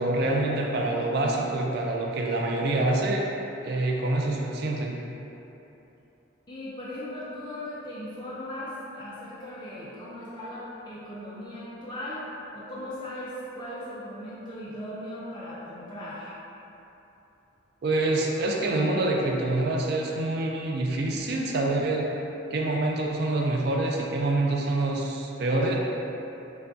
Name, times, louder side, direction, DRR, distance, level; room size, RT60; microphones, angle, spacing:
voice 1, 0.0-3.2 3.6-5.0 17.8-22.1 22.5-25.8, right 2 dB, 50° right, -1 dB, 0.4 m, -26 dB
voice 2, 6.5-16.4, left 1 dB, 20° left, -9 dB, 0.5 m, -38 dB
6.6 x 2.3 x 2.6 m, 3.0 s
head